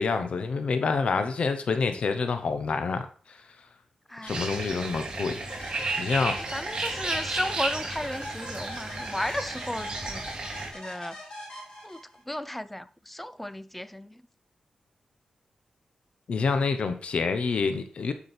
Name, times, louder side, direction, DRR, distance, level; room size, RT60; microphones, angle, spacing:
voice 1, 0.0-3.1 4.2-5.4 6.0-6.4 16.3-18.1, left 4 dB, 60° left, 1.0 m, -27 dB
voice 2, 4.1-4.5 4.9-5.1 6.5-10.5 10.7-11.2 11.8-12.0 12.3-14.2, left 1 dB, 5° left, 0.5 m, -35 dB
sound 1, 4.3-10.7, right 3 dB, 40° right, 3.1 m, -33 dB
sound 2, 5.5-12.4, left 1 dB, 40° left, 4.5 m, -42 dB
9.9 x 6.3 x 4.4 m
wide cardioid pair, 125°, 2 cm